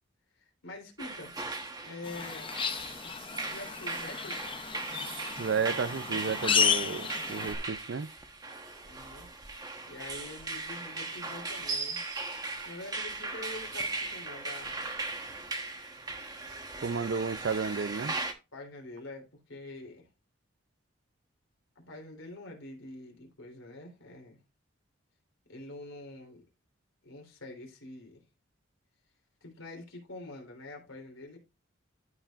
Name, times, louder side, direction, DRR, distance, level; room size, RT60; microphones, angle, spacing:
voice 1, 0.4-1.3 1.8-2.5 3.4-4.4 8.8-9.3 9.9-12.0 12.6-14.9 18.5-20.1 21.7-24.4 25.5-26.4 27.0-28.2 29.4-31.4, left 2 dB, 80° left, 3.3 m, -45 dB
sound 1, 1.0-18.3, right 3 dB, 20° right, 1.0 m, -38 dB
sound 2, 2.0-7.6, left 7 dB, 25° left, 0.6 m, -32 dB
voice 2, 5.4-8.1 16.8-18.1, right 5 dB, 55° right, 0.4 m, -32 dB
14.5 x 4.9 x 2.4 m
head